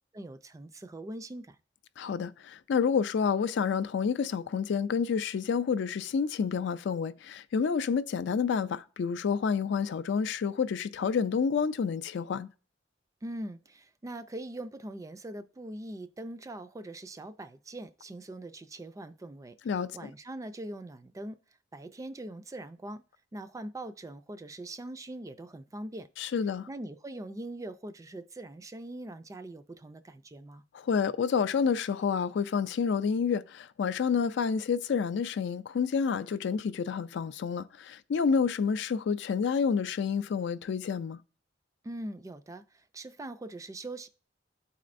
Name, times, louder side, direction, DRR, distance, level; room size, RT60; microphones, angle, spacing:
voice 1, 0.1-1.6 13.2-19.6 19.9-21.4 21.7-23.0 23.3-26.1 26.7-30.6 41.8-44.1, right 1 dB, 20° right, 0.3 m, -42 dB
voice 2, 2.0-12.5 19.7-20.1 26.2-26.7 30.7-41.2, left 6 dB, 65° left, 0.3 m, -29 dB
11.0 x 4.2 x 2.5 m
head